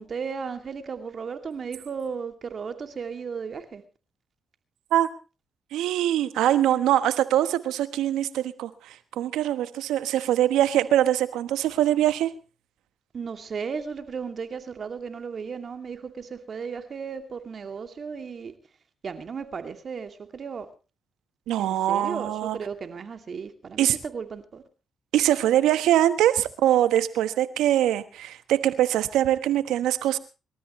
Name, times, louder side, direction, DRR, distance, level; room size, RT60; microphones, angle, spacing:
voice 1, 0.0-3.8 13.1-18.5 19.0-20.7 21.6-24.6, right 6 dB, 55° right, 2.5 m, -35 dB
voice 2, 5.7-12.3 21.5-22.6 23.8-24.0 25.1-30.2, right 12 dB, 90° right, 1.2 m, -23 dB
27.0 x 13.5 x 3.2 m
supercardioid pair, 60°, 0 cm